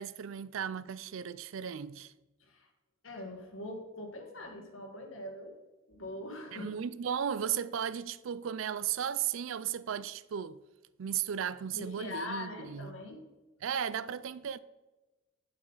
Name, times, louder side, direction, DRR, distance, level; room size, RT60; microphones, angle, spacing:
voice 1, 0.0-2.1 6.5-10.6 11.0-13.0 13.6-14.6, right 8 dB, 65° right, 0.4 m, -35 dB
voice 2, 3.0-5.6 5.9-6.7 11.7-13.2, left 2 dB, 65° left, 1.7 m, -42 dB
8.6 x 7.5 x 4.0 m
head